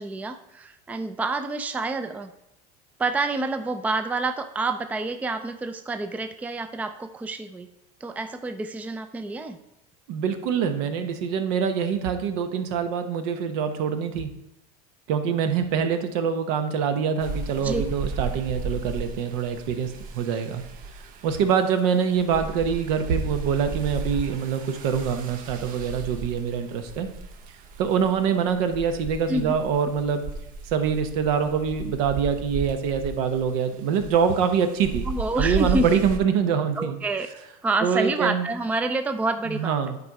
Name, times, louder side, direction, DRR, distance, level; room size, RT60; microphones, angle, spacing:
voice 1, 0.0-2.3 3.0-7.7 8.0-9.6 17.6-17.8 29.3-29.5 35.1-35.9 36.8-37.3 37.6-39.7, right 3 dB, 10° right, 8 dB, 0.4 m, -28 dB
voice 2, 10.1-14.3 15.1-20.6 21.2-27.1 27.8-30.2 30.7-35.1 35.4-37.0 37.8-38.5 39.4-40.0, right 7 dB, 70° right, 8 dB, 1.0 m, -25 dB
sound 1, 17.2-36.2, right 3 dB, 50° right, 0.9 m, -35 dB
9.6 x 4.1 x 4.7 m, 0.88 s
supercardioid pair, 125°, 19 cm